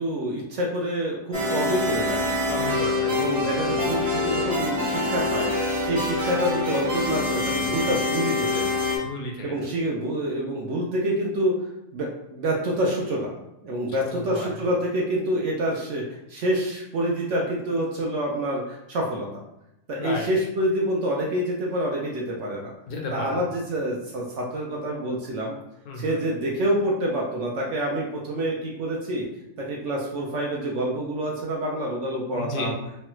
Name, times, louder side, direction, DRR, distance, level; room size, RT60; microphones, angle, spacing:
voice 1, 0.0-2.4 3.1-5.5 5.8-8.8 9.4-11.5 11.9-13.3 13.6-19.3 19.9-22.7 23.1-25.6 26.0-29.3 29.6-32.8, right 1 dB, 65° right, -2 dB, 0.8 m, -27 dB
sound 1, 1.3-9.0, left 2 dB, 25° right, 0.6 m, -25 dB
voice 2, 2.5-3.3 9.0-9.6 14.1-14.5 20.0-20.3 22.9-23.4 25.9-26.3 32.3-32.7, left 2 dB, 75° left, 0 dB, 1.2 m, -33 dB
3.2 x 2.2 x 2.9 m, 0.85 s
omnidirectional pair, 1.6 m